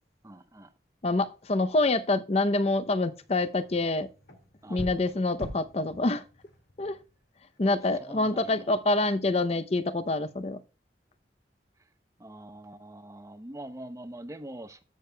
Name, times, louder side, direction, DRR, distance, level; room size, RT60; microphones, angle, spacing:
voice 1, 0.2-0.7 4.6-4.8 7.7-8.7 11.8-11.9 12.2-14.8, right 1 dB, 20° right, 0.6 m, -44 dB
voice 2, 1.0-4.1 4.7-6.2 6.8-7.0 7.6-10.6, left 2 dB, 35° left, 0.6 m, -26 dB
sound 1, 2.8-7.7, equal, 80° left, 2.0 m, -45 dB
13.5 x 6.5 x 2.2 m
head